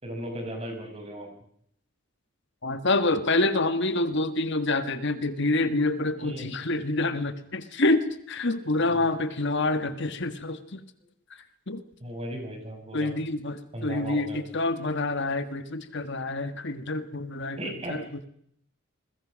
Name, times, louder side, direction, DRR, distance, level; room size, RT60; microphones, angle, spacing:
voice 1, 0.0-1.3 6.2-6.5 8.9-9.0 12.0-13.1 13.7-14.4 17.6-18.1, right 1 dB, 30° right, 4 dB, 6.1 m, -36 dB
voice 2, 2.6-10.8 11.3-11.8 12.9-18.3, left 2 dB, 55° left, 10 dB, 1.6 m, -27 dB
28.5 x 21.5 x 6.4 m, 0.69 s
head